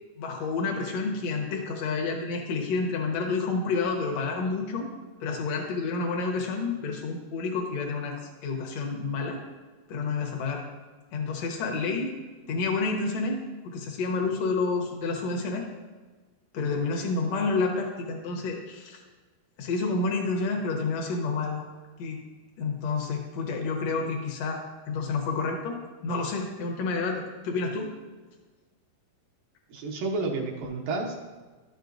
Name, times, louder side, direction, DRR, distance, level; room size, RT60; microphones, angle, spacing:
voice 1, 0.2-4.9 5.2-8.2 8.4-9.4 9.9-10.6 11.1-12.1 12.5-15.7 16.5-19.0 19.6-21.6 22.0-22.2 22.6-27.9, left 4 dB, 70° left, 2 dB, 1.5 m, -29 dB
voice 2, 29.7-31.2, right 3 dB, 75° right, 0 dB, 2.6 m, -30 dB
12.0 x 8.2 x 2.6 m, 1.3 s
omnidirectional pair, 4.3 m